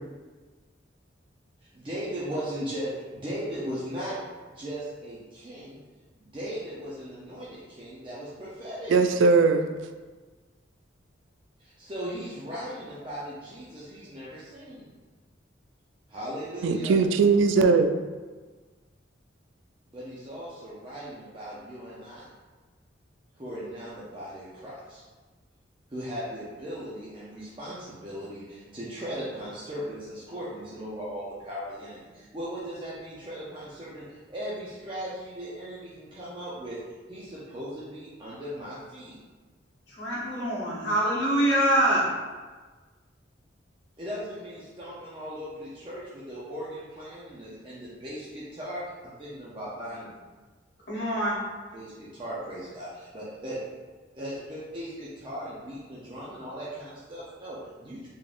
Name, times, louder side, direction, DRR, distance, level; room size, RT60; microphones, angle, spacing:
voice 1, 1.7-4.2 4.5-5.8 6.2-8.9 11.6-14.9 16.1-17.0 19.9-22.3 23.3-25.0 25.9-36.8 37.1-39.2 44.0-50.2 51.7-53.6 54.1-58.1, equal, 25° right, -9 dB, 0.6 m, -38 dB
voice 2, 8.9-9.7 16.6-17.9, right 4 dB, 80° right, 8 dB, 0.3 m, -20 dB
voice 3, 39.9-42.1 50.9-51.4 51.7-51.8, right 1 dB, 65° left, -5 dB, 1.2 m, -25 dB
3.8 x 3.6 x 2.5 m, 1.4 s
head